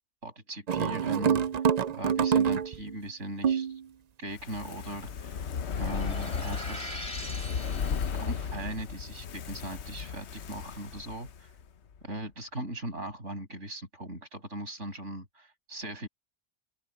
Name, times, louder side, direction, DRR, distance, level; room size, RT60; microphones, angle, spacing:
voice 1, 0.2-1.7 1.9-3.8 4.2-5.5 5.8-7.1 8.1-11.5 12.0-16.1, right 1 dB, 80° right, 7.8 m, -39 dB
sound 1, 0.7-3.0 3.4-3.8, right 7 dB, 55° right, 0.5 m, -26 dB
Fire, 4.3-11.6 11.9-12.0, left 6 dB, 65° left, 1.1 m, -35 dB
sound 2, 5.7-8.5, left 1 dB, 30° left, 7.2 m, -42 dB
open air
omnidirectional pair, 1.2 m